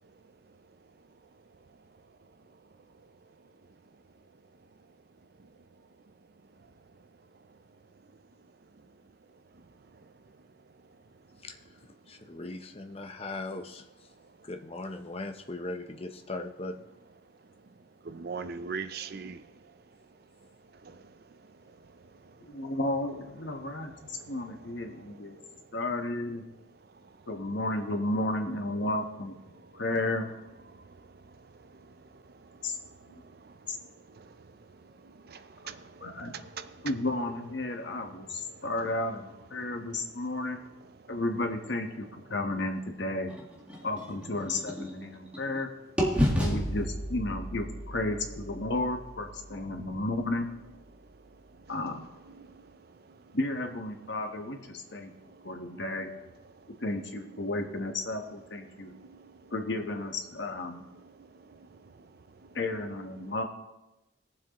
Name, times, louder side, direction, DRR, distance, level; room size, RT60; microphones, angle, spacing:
voice 1, 1.5-3.8 5.4-6.1 6.6-7.0 7.3-7.6 8.0-8.2 8.7-9.0 9.5-11.5 14.2-14.5 17.2-22.7 23.4-25.7 26.7-27.3 29.5-29.8 30.7-36.9 37.7-38.7 39.6-40.3 40.8-41.2 43.7-43.9 45.2-45.4 46.2-46.7 49.7-50.0 50.9-53.4 54.1-54.2 54.7-55.9 56.5-56.8 57.1-57.5 58.7-59.5 60.8-62.6 63.0-63.3, right 5 dB, 50° right, 0.5 m, -49 dB
voice 2, 12.1-13.9 14.4-16.8, left 2 dB, 30° left, 0.7 m, -38 dB
voice 3, 22.4-25.3 25.7-26.4 27.3-29.3 29.7-30.3 32.6-32.7 33.7-33.8 36.0-36.3 36.8-40.6 41.1-43.3 43.8-45.7 46.4-50.5 51.7-52.0 53.3-55.1 55.4-56.1 56.8-58.9 59.5-60.8 62.5-63.4, left 2 dB, 65° left, 1.2 m, -33 dB
sound 1, 43.3-45.6 46.0-49.9, equal, 5° right, 1.7 m, -32 dB
20.5 x 7.5 x 3.0 m
head